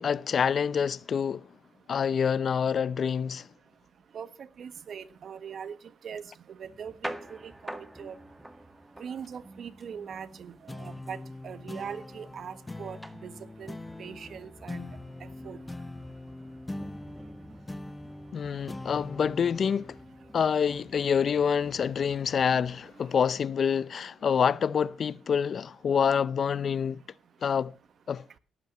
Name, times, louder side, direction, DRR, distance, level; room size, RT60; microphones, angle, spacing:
voice 1, 0.0-1.5 1.9-3.5 18.3-20.0 20.3-27.0 27.4-27.7 28.1-28.2, left 7 dB, 50° left, 0.6 m, -27 dB
voice 2, 4.6-5.8 6.0-6.2 6.6-8.2 9.0-11.2 11.4-13.0 13.2-13.3 13.6-14.9 15.4-15.6, right 7 dB, 55° right, 1.4 m, -41 dB
sound 1, 6.6-22.8, right 1 dB, 10° right, 1.8 m, -48 dB
sound 2, 10.7-21.5, left 2 dB, 15° left, 1.1 m, -43 dB
17.5 x 14.5 x 3.1 m
cardioid pair, 90°, 0 cm